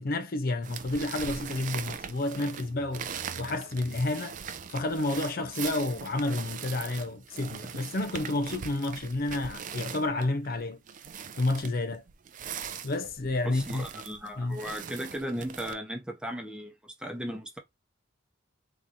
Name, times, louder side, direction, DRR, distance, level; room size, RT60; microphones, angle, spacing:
voice 1, 0.0-3.1 3.4-4.4 4.7-10.8 11.4-12.0 12.8-13.9 14.4-14.6, left 2 dB, 50° left, 0.5 m, -30 dB
sound 1, 0.6-15.7, right 7 dB, 40° right, 0.4 m, -41 dB
sound 2, 2.5-5.9, right 4 dB, 85° right, 0.6 m, -52 dB
voice 2, 13.4-17.6, equal, 5° right, 0.8 m, -36 dB
3.7 x 3.0 x 2.5 m
head